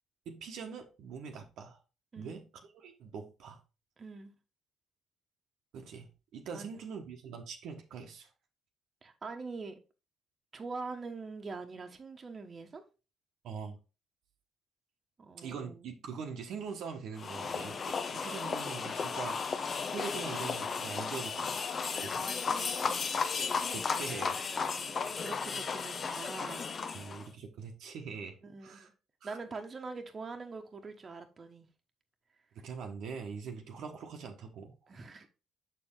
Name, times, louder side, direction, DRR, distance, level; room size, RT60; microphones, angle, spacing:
voice 1, 0.3-1.8 2.2-3.6 5.7-8.3 13.4-13.8 15.4-21.6 22.0-22.4 23.7-24.4 24.8-25.0 26.9-28.9 29.2-29.4 32.5-34.7, right 6 dB, 70° right, 1.0 m, -43 dB
voice 2, 4.0-4.3 6.5-6.7 9.0-9.8 10.5-12.8 15.2-15.9 22.3-23.5 24.9-26.7 28.4-28.9 29.2-31.7 34.9-35.3, right 4 dB, 40° right, 1.1 m, -44 dB
sound 1, 17.2-27.3, left 5 dB, 45° left, 0.6 m, -34 dB
6.6 x 4.4 x 3.6 m
supercardioid pair, 60°, 0 cm